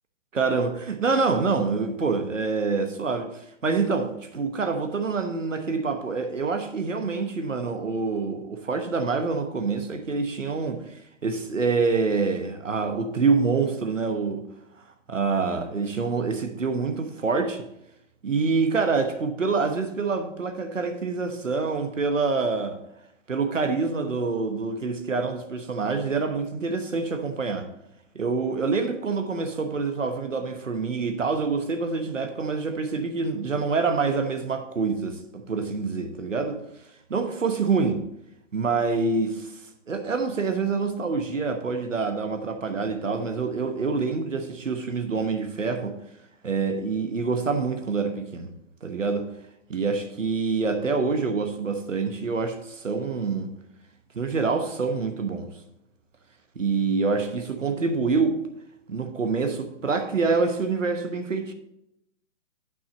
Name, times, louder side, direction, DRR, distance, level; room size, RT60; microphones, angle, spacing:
voice 1, 0.3-10.8 11.2-14.5 15.1-17.7 18.2-22.8 23.3-27.7 28.1-36.6 37.1-38.1 38.5-39.6 39.9-46.0 46.4-48.5 48.8-49.3 49.7-53.5 54.1-55.5 56.6-58.4 58.9-61.5, right 4 dB, 90° right, 1.1 m, -26 dB
10.5 x 6.1 x 4.0 m
figure-of-eight pair, 135°, 37 cm